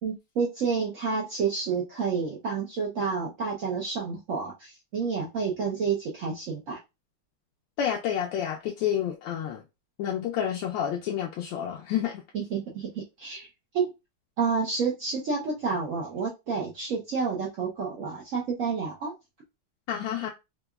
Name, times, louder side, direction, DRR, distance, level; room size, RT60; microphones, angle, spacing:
voice 1, 0.0-6.8 12.3-13.5 13.7-13.9 14.4-19.1, right 5 dB, 80° right, 0.7 m, -29 dB
voice 2, 7.8-9.6 10.0-12.2 19.9-20.3, left 9 dB, 75° left, 1.2 m, -29 dB
4.6 x 2.3 x 2.2 m
omnidirectional pair, 2.4 m